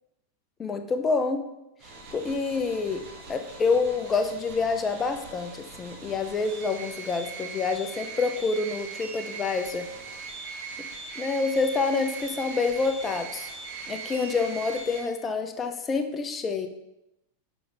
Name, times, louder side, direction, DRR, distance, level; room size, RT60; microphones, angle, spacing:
voice 1, 0.6-1.4 2.1-3.0 3.3-9.9 11.2-13.5 13.9-16.7, left 4 dB, 20° left, 7 dB, 0.6 m, -27 dB
sound 1, 1.8-15.0, right 4 dB, 45° right, 1.7 m, -40 dB
6.2 x 4.9 x 3.4 m, 0.89 s
figure-of-eight pair, 90°, 0 cm